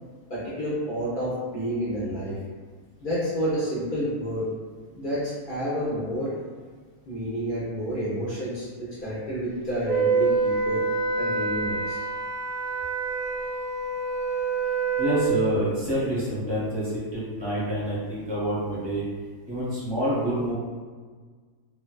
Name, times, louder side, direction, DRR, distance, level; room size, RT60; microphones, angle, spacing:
voice 1, 0.3-2.4 3.0-4.4 4.9-6.3 7.1-10.8 11.2-12.0, equal, 60° left, -9 dB, 0.5 m, -29 dB
Wind instrument woodwind instrument, 9.8-15.3, right 4 dB, 65° right, 0.9 m, -26 dB
voice 2, 15.0-19.0 19.5-20.5, equal, 25° right, -9 dB, 0.7 m, -27 dB
2.5 x 2.2 x 2.2 m, 1.5 s
omnidirectional pair, 1.4 m